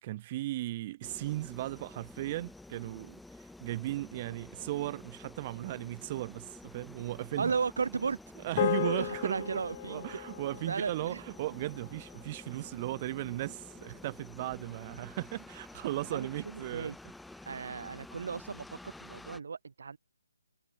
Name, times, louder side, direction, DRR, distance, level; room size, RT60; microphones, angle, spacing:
voice 1, 0.0-7.5 8.4-17.0, right 16 dB, 30° right, 3.5 m, -37 dB
sound 1, 1.0-19.4, left 2 dB, ahead, 3.9 m, -51 dB
voice 2, 7.4-10.2 10.7-11.2 16.1-16.9 17.5-20.0, right 5 dB, 60° right, 4.9 m, -35 dB
sound 2, 8.6-13.1, left 13 dB, 35° left, 2.0 m, -37 dB
figure-of-eight pair, 145°, 0 cm